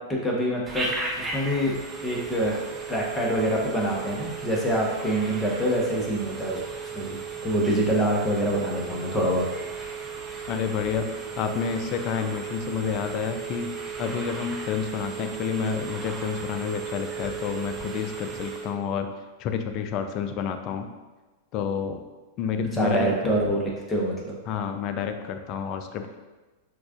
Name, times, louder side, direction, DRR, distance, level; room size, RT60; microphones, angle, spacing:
voice 1, 0.1-1.7 2.0-7.2 7.4-9.5 22.7-24.4, right 1 dB, 15° left, -2 dB, 1.0 m, -26 dB
Telephone, 0.7-18.8, right 5 dB, 15° right, 0.6 m, -35 dB
voice 2, 10.5-13.7 14.0-19.1 19.4-20.9 21.5-22.0 22.4-23.4 24.5-26.2, left 6 dB, 45° left, 7 dB, 0.4 m, -29 dB
6.0 x 2.5 x 2.4 m, 1.2 s
hypercardioid pair, 100°, 0 cm